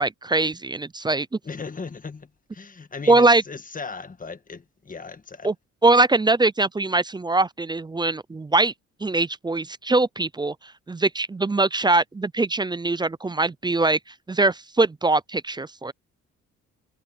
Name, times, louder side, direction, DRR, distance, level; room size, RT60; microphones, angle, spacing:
voice 1, 0.0-1.3 3.1-3.4 5.4-5.5 5.8-8.7 9.0-10.5 10.9-14.0 14.3-15.9, right 2 dB, 15° right, 0.5 m, -22 dB
voice 2, 1.4-5.5, left 4 dB, 25° left, 1.6 m, -37 dB
cardioid pair, 90°, 30 cm